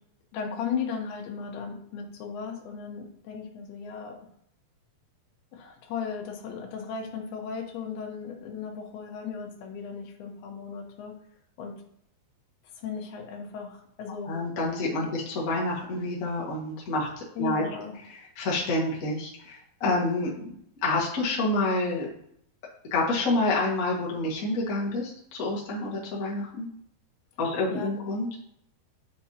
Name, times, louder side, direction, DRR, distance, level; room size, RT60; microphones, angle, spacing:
voice 1, 0.3-4.2 5.5-11.1 11.6-11.7 12.8-14.3 17.4-17.9 27.7-27.9, left 6 dB, 80° left, 2 dB, 3.0 m, -36 dB
voice 2, 14.2-17.1 17.4-17.7 18.1-20.5 20.8-22.1 22.9-26.7 27.4-28.4, left 2 dB, 65° left, -4 dB, 0.8 m, -28 dB
8.7 x 5.7 x 2.8 m, 0.71 s
omnidirectional pair, 4.5 m